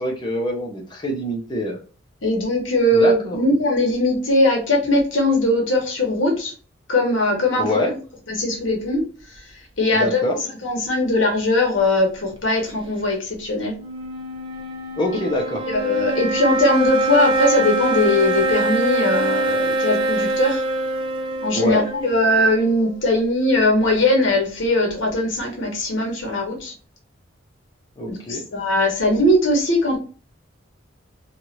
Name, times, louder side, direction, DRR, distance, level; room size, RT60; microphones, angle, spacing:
voice 1, 0.0-1.8 2.9-3.4 7.6-7.9 9.9-10.4 15.0-15.6 21.5-21.9 28.0-28.4, left 1 dB, 25° left, -1 dB, 0.6 m, -25 dB
voice 2, 2.2-6.5 6.9-7.7 8.3-9.0 9.3-9.4 9.8-10.2 10.6-13.7 15.7-20.6 21.4-26.7 28.1-30.0, left 1 dB, 75° left, 2 dB, 1.0 m, -20 dB
sound 1, 13.8-23.2, right 2 dB, 25° right, 0.5 m, -24 dB
3.0 x 2.4 x 2.7 m, 0.36 s
head